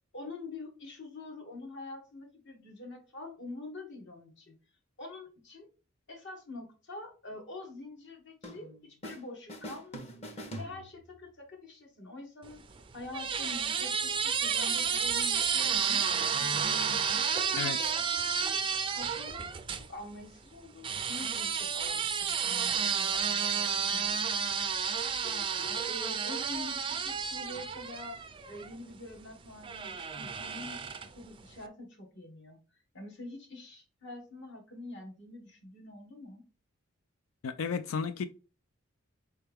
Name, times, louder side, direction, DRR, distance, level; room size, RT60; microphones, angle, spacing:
voice 1, 0.1-4.6 5.0-5.7 6.1-10.2 10.6-16.9 17.3-17.7 18.1-18.6 18.9-24.3 25.1-28.2 28.5-36.4, left 2 dB, 60° left, 1.4 m, -46 dB
sound 1, 8.4-9.2 9.5-11.3, equal, 30° left, 0.8 m, -44 dB
sound 2, 12.5-19.9 20.8-28.8 29.6-31.2, right 7 dB, 25° right, 0.4 m, -31 dB
voice 2, 37.4-38.2, left 6 dB, 80° left, 0.4 m, -33 dB
4.4 x 3.4 x 3.4 m
head